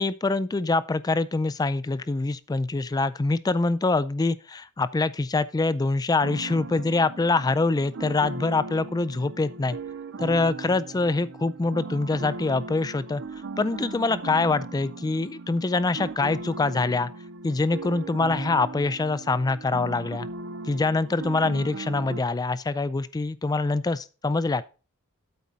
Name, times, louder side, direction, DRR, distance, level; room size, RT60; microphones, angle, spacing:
voice 1, 0.0-9.8 10.2-13.2 13.6-17.1 17.4-20.3 20.6-24.7, left 3 dB, 15° left, 0.3 m, -25 dB
sound 1, 6.2-22.2, right 3 dB, 55° right, 0.6 m, -38 dB
8.5 x 7.2 x 4.0 m
head